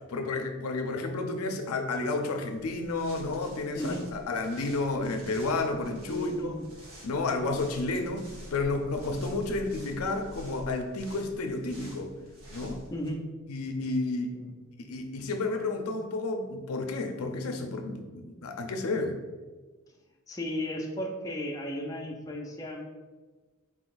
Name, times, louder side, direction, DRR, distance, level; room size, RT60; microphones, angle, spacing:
voice 1, 0.1-6.6 7.0-12.1 12.5-12.8 13.5-14.4 14.8-19.2, left 3 dB, 90° left, 5 dB, 0.5 m, -31 dB
sound 1, 2.5-13.1, equal, 75° right, 1.0 m, -48 dB
voice 2, 3.7-4.1 6.1-6.7 9.1-9.2 12.9-13.2 14.3-14.8 20.3-22.9, left 1 dB, 15° left, 1 dB, 0.4 m, -35 dB
4.2 x 3.8 x 2.5 m, 1.3 s
head